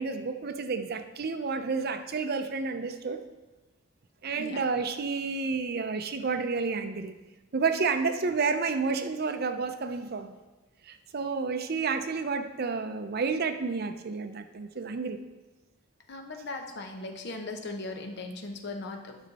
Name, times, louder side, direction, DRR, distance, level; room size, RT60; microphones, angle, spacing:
voice 1, 0.0-3.2 4.2-7.2 7.5-10.4 10.9-15.2, right 4 dB, 55° right, 8 dB, 0.6 m, -30 dB
voice 2, 4.3-4.6 16.1-19.2, left 2 dB, 60° left, 4 dB, 0.9 m, -38 dB
9.6 x 6.3 x 4.1 m, 1.2 s
head